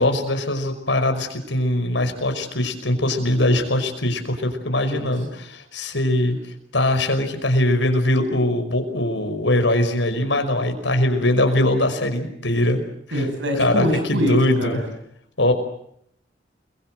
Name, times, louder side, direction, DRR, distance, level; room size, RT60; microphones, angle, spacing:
voice 1, 0.0-6.4 6.7-12.8 13.1-13.2 13.6-14.8 15.4-15.5, left 1 dB, 80° left, 6 dB, 5.5 m, -21 dB
voice 2, 13.1-14.8, equal, 85° right, 4 dB, 6.5 m, -24 dB
29.5 x 23.0 x 7.9 m, 0.72 s
head